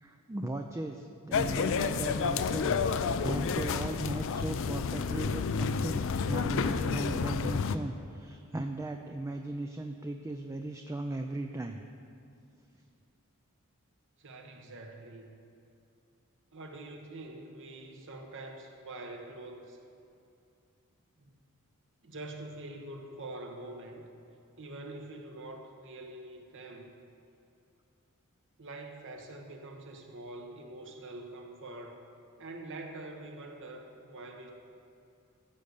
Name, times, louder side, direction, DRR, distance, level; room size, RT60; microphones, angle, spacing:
voice 1, 0.0-11.8, right 2 dB, 15° right, 4 dB, 0.4 m, -37 dB
sound 1, 1.3-7.8, left 5 dB, 60° left, 0.4 m, -30 dB
voice 2, 14.2-15.4 16.5-19.8 21.2-21.3 22.0-24.1 24.6-26.9 28.6-32.0 32.4-34.5, right 2 dB, 60° right, 2 dB, 1.2 m, -45 dB
14.0 x 5.3 x 6.6 m, 2.5 s
head